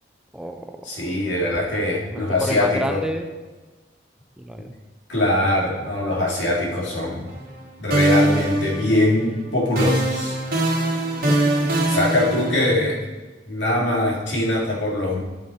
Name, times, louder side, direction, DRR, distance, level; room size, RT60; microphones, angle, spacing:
voice 1, 0.3-0.9 2.1-3.3 4.4-4.7 7.1-7.2 11.1-11.9, equal, 5° right, 5 dB, 0.5 m, -31 dB
voice 2, 0.8-3.0 5.1-7.3 7.8-10.4 11.8-13.0 13.5-15.2, left 1 dB, 80° left, -4 dB, 2.5 m, -22 dB
sound 1, 7.3-7.6 7.9-9.3 9.8-12.9, right 2 dB, 55° right, 1.5 m, -22 dB
11.0 x 5.8 x 4.4 m, 1.2 s
head